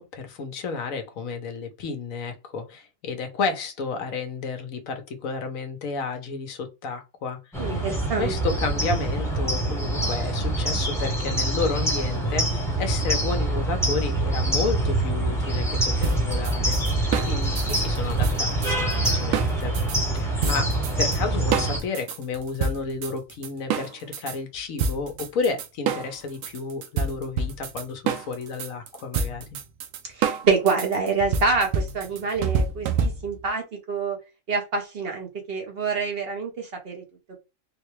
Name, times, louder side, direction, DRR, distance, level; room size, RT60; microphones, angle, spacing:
voice 1, 0.0-7.8 8.2-16.8 17.3-19.7 20.1-29.4, left 4 dB, 80° left, 1.2 m, -31 dB
sound 1, 7.5-21.8, right 2 dB, ahead, 0.9 m, -25 dB
voice 2, 7.6-8.3 18.9-19.1 30.0-34.2 34.5-37.0, right 4 dB, 50° right, 1.0 m, -26 dB
sound 2, 16.0-20.0 20.4-21.2 21.5-24.4 24.8-33.5, right 5 dB, 80° right, 1.0 m, -28 dB
3.7 x 2.2 x 3.0 m
omnidirectional pair, 1.4 m